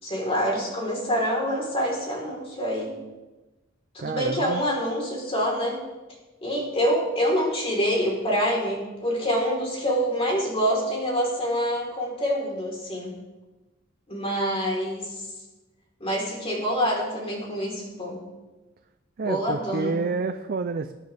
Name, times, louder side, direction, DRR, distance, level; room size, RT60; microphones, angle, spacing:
voice 1, 0.0-2.9 3.9-5.8 6.4-13.1 14.1-15.2 16.0-18.2 19.2-20.0, equal, 30° left, -2 dB, 4.0 m, -26 dB
voice 2, 4.0-4.6 19.2-20.9, right 4 dB, 45° right, 8 dB, 0.5 m, -29 dB
20.0 x 10.5 x 3.5 m, 1.1 s
head